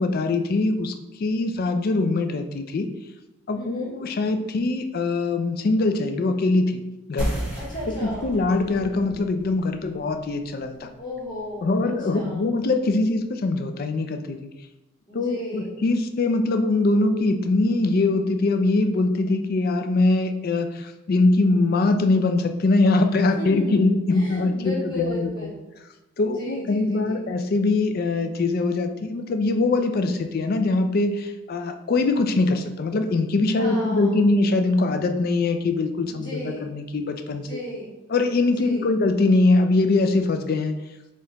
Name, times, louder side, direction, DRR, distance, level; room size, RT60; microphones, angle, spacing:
voice 1, 0.0-2.9 3.5-6.8 7.1-7.4 7.9-10.9 11.6-14.5 15.1-25.5 26.2-37.6 38.1-40.7, left 2 dB, 45° left, 7 dB, 0.3 m, -22 dB
voice 2, 3.5-3.9 7.6-8.3 11.0-11.7 12.1-12.5 15.1-15.8 23.4-23.8 24.1-25.6 26.2-27.2 33.6-34.2 36.0-36.7 37.4-38.0 38.4-38.9, left 1 dB, 20° left, -5 dB, 1.1 m, -34 dB
sound 1, 7.2-12.3, equal, 10° right, 1.0 m, -35 dB
4.1 x 2.5 x 3.9 m, 0.97 s
head